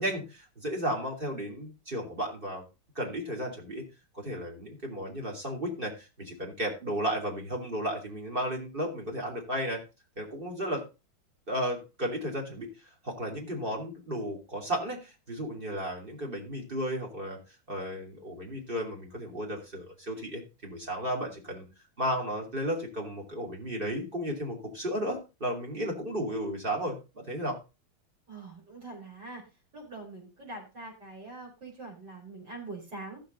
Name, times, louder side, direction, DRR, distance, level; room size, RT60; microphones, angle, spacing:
voice 1, 0.0-2.6 2.9-3.8 4.1-9.8 10.2-10.8 11.5-12.7 13.0-17.4 17.7-21.6 22.0-27.6, equal, 25° right, 0 dB, 3.0 m, -34 dB
voice 2, 28.3-29.5 29.7-33.2, right 2 dB, 55° right, -1 dB, 5.4 m, -43 dB
14.0 x 6.7 x 3.9 m, 0.28 s
omnidirectional pair, 2.2 m